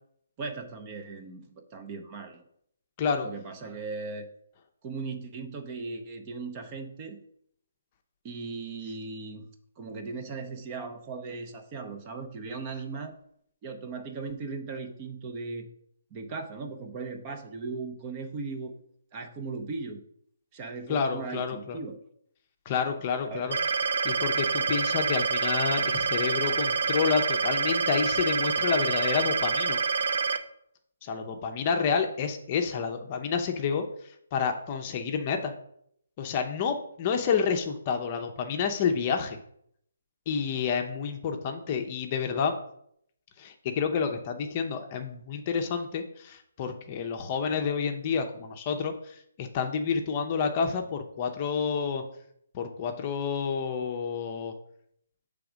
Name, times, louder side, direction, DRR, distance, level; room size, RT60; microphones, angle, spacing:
voice 1, 0.4-2.4 3.2-4.3 4.8-7.2 8.2-9.5 9.8-13.1 13.6-15.7 16.1-18.7 19.1-20.0 20.5-22.0 23.2-23.4, right 4 dB, 25° right, 6 dB, 0.7 m, -38 dB
voice 2, 3.0-3.3 20.9-21.8 22.7-23.6 24.0-29.8 31.0-33.8 34.3-35.5 36.2-39.4 40.3-42.5 43.4-52.0 52.5-54.5, left 6 dB, 30° left, 5 dB, 0.6 m, -29 dB
sound 1, 23.5-30.4, right 5 dB, 60° right, 0.6 m, -27 dB
6.8 x 3.5 x 5.0 m, 0.70 s
hypercardioid pair, 155°, 0 cm